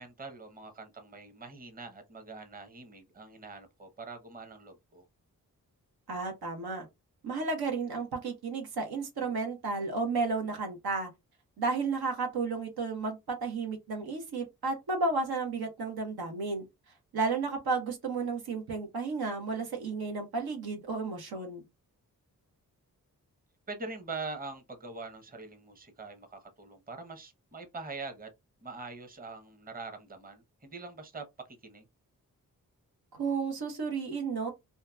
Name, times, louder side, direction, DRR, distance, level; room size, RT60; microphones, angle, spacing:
voice 1, 0.0-5.0 23.7-28.3 28.6-31.3 31.6-31.8, right 3 dB, 25° right, 0.9 m, -43 dB
voice 2, 6.1-6.8 7.2-11.1 11.6-16.6 17.1-21.6 33.1-34.5, right 4 dB, 80° right, 1.0 m, -32 dB
2.8 x 2.3 x 2.3 m
cardioid pair, 45°, 36 cm